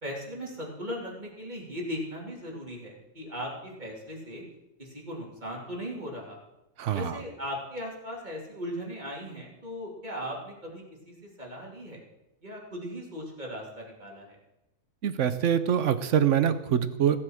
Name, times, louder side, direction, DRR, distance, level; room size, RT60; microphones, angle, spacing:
voice 1, 0.0-4.4 4.8-6.4 6.9-12.0 12.4-14.4, equal, 30° right, -2 dB, 2.9 m, -38 dB
voice 2, 6.8-7.2 15.0-17.2, right 9 dB, 60° right, 12 dB, 0.9 m, -24 dB
15.5 x 7.6 x 6.3 m, 0.94 s
omnidirectional pair, 1.7 m